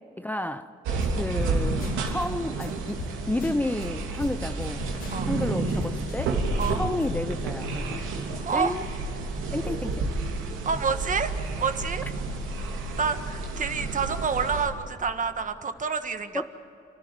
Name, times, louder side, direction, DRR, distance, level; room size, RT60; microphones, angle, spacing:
voice 1, 0.2-0.7 1.1-3.0 3.3-4.9 5.3-6.4 6.8-8.0 8.5-8.9 9.5-10.1 16.3-16.5, left 1 dB, 10° left, 0.7 m, -31 dB
sound 1, 0.9-14.7, right 3 dB, 90° right, 3.2 m, -30 dB
sound 2, 1.0-1.1 1.4-1.5 1.8-2.3 2.6-2.7 3.0-3.1 3.4-3.9 4.2-6.3 6.6-7.1, left 3 dB, 90° left, 3.9 m, -37 dB
voice 2, 8.4-8.7 10.6-11.3 11.6-12.0 13.0-16.5, right 5 dB, 40° right, 1.6 m, -28 dB
29.0 x 13.0 x 9.1 m
cardioid pair, 90°, 20 cm